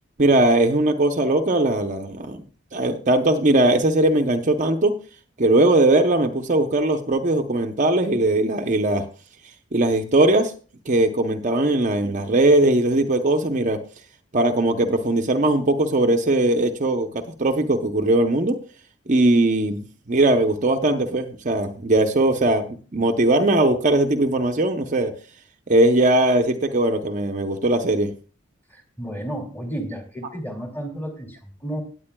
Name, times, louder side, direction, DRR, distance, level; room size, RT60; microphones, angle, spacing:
voice 1, 0.2-2.4 2.7-5.0 5.4-9.0 9.7-10.5 10.9-13.8 14.3-18.6 19.1-25.1 25.7-28.1, right 2 dB, 40° right, 4 dB, 0.7 m, -19 dB
voice 2, 28.7-31.8, right 1 dB, 10° left, 2 dB, 2.2 m, -32 dB
17.5 x 9.1 x 2.2 m, 0.39 s
head